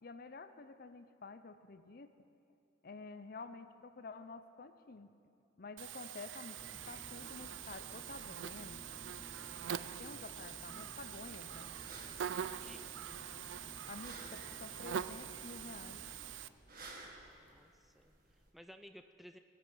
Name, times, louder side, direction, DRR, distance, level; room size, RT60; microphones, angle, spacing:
voice 1, 0.0-2.1 2.8-5.1 5.6-8.8 10.0-11.7 13.9-16.0, left 4 dB, 50° left, 10 dB, 0.6 m, -50 dB
Buzz, 5.8-16.5, right 9 dB, 85° right, 0.4 m, -44 dB
sound 1, 6.5-16.2, equal, 20° right, 1.7 m, -56 dB
sound 2, 11.7-18.5, right 2 dB, 50° right, 1.6 m, -56 dB
voice 2, 12.6-13.0 17.4-19.4, equal, ahead, 7 dB, 0.3 m, -57 dB
18.5 x 8.8 x 5.7 m, 2.6 s
head